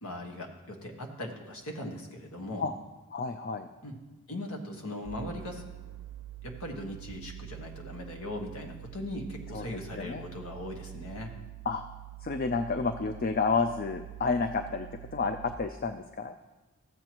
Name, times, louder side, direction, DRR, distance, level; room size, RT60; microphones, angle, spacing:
voice 1, 0.0-2.6 3.8-4.0 4.3-5.6 6.4-11.3, left 1 dB, 80° left, 1 dB, 1.3 m, -39 dB
voice 2, 3.1-3.7 9.5-9.6 10.0-10.2 11.7-11.8 12.2-16.3, left 4 dB, 40° left, 7 dB, 0.3 m, -30 dB
sound 1, 5.1-15.6, right 14 dB, 75° right, 0.5 m, -45 dB
14.0 x 7.8 x 3.0 m, 1.1 s
head